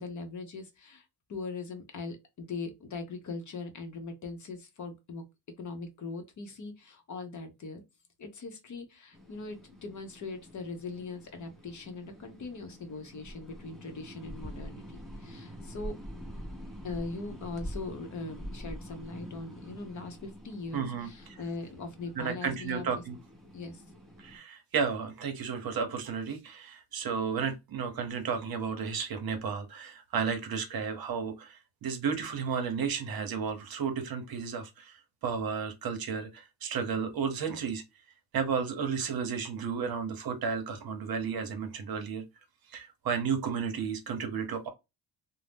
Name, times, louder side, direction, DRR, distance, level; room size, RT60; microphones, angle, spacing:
voice 1, 0.0-5.2 5.6-7.8 8.2-16.0 16.8-22.9 23.5-23.8, left 3 dB, 40° left, 0.7 m, -40 dB
sound 1, 9.1-24.4, equal, ahead, 0.7 m, -46 dB
voice 2, 20.7-21.1 22.2-23.2 24.2-37.8 38.3-42.2 42.7-44.7, right 6 dB, 50° right, 0.8 m, -33 dB
2.6 x 2.1 x 3.3 m
cardioid pair, 125°, 45 cm